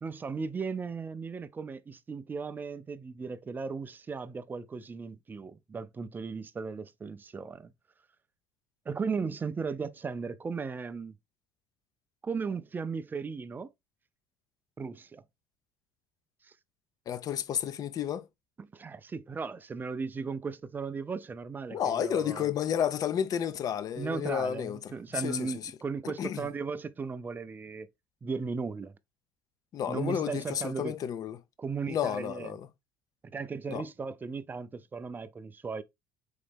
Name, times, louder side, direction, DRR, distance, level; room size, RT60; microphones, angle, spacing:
voice 1, 0.0-7.7 8.9-11.2 12.2-13.7 14.8-15.2 16.4-16.5 18.6-22.5 24.0-27.9 28.2-28.9 29.9-31.0 31.6-32.5 33.2-35.8, right 5 dB, 20° right, 0.4 m, -36 dB
voice 2, 17.1-18.3 21.7-24.9 25.2-25.5 26.0-26.5 29.7-31.4 31.9-32.7 33.7-33.8, left 9 dB, 45° left, 0.5 m, -31 dB
4.0 x 3.1 x 3.4 m
supercardioid pair, 105°, 9 cm